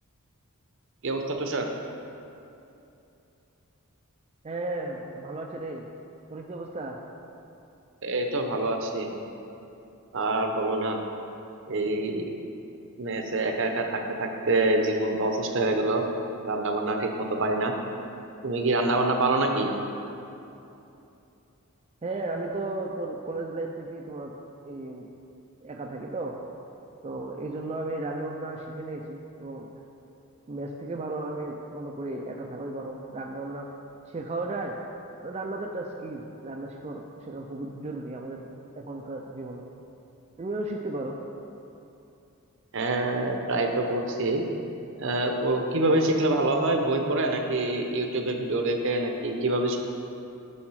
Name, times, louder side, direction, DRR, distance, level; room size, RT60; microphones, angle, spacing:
voice 1, 1.0-1.7 8.0-9.1 10.1-11.0 11.7-12.4 13.0-16.0 16.4-17.7 18.4-19.7 42.7-44.4 45.0-49.8, right 2 dB, 60° right, 4 dB, 0.8 m, -26 dB
voice 2, 4.4-5.9 6.3-7.0 22.0-24.3 24.6-25.1 25.6-26.4 27.0-29.7 30.5-33.7 34.1-34.8 35.2-38.5 38.8-39.7 40.4-41.2, right 2 dB, 30° right, 0 dB, 0.4 m, -34 dB
7.1 x 6.4 x 4.7 m, 2.8 s
head